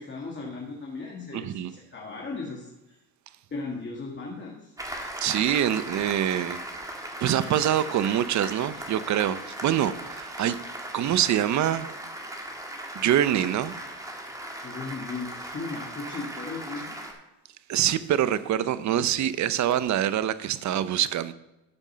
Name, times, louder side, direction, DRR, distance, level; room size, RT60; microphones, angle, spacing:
voice 1, 0.0-3.0 3.5-4.7 14.6-17.0, left 3 dB, 25° left, 1.8 m, -37 dB
voice 2, 1.3-1.7 5.2-6.6 7.2-10.6 10.9-11.9 12.9-13.7 17.7-21.3, right 10 dB, 40° right, 0.7 m, -25 dB
Applause, 4.8-17.1, right 1 dB, 10° right, 1.8 m, -38 dB
12.5 x 5.3 x 5.6 m
cardioid pair, 110°, 43 cm